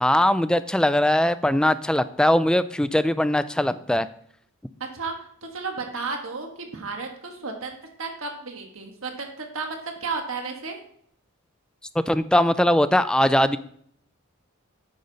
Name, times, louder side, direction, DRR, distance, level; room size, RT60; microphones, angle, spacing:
voice 1, 0.0-4.1 12.1-13.6, left 1 dB, 5° left, 13 dB, 0.3 m, -20 dB
voice 2, 4.8-5.1 5.4-10.8, right 4 dB, 75° right, 3 dB, 1.4 m, -33 dB
9.4 x 6.4 x 4.0 m, 0.65 s
head